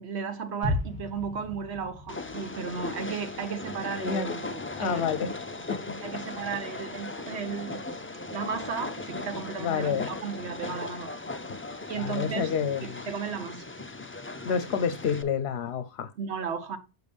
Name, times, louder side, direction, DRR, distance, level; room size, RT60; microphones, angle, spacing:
voice 1, 0.0-5.1 6.0-7.9 8.3-11.1 11.9-12.5 12.8-13.6 16.2-16.8, right 6 dB, 75° right, 1.3 m, -34 dB
sound 1, 0.6-4.6 4.9-5.0, left 2 dB, 10° right, 4.9 m, -36 dB
Train, 2.1-15.2, left 3 dB, 20° left, 0.3 m, -38 dB
voice 2, 4.0-4.3 4.8-5.3 5.7-6.0 6.7-6.8 9.6-10.1 11.9-13.0 14.5-16.1, left 7 dB, 70° left, 0.9 m, -29 dB
6.8 x 6.4 x 3.4 m
omnidirectional pair, 1.1 m